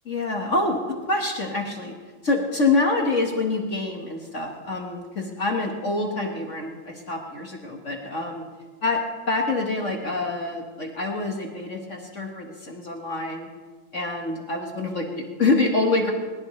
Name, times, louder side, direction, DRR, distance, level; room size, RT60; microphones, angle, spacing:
voice 1, 0.1-1.9 2.2-8.4 8.8-9.0 9.3-13.5 13.9-16.1, left 3 dB, 40° left, 1 dB, 1.8 m, -26 dB
21.5 x 20.5 x 3.3 m, 1.4 s
omnidirectional pair, 2.2 m